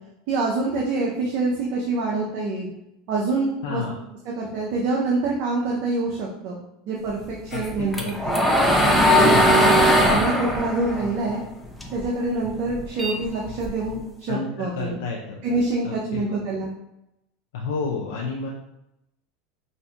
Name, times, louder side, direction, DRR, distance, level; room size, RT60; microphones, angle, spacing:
voice 1, 0.3-2.7 3.1-3.8 4.4-6.6 6.9-8.4 9.1-11.4 11.9-15.0 15.4-16.7, right 3 dB, 60° right, -2 dB, 0.7 m, -26 dB
voice 2, 3.6-4.0 7.5-8.3 9.3-9.7 14.3-15.4 15.8-16.3 17.5-18.5, left 4 dB, 85° left, -3 dB, 0.6 m, -31 dB
sound 1, 7.5-12.1 12.4-14.0, equal, 5° left, 0.7 m, -19 dB
5.3 x 2.6 x 2.4 m, 0.87 s
supercardioid pair, 110°, 0 cm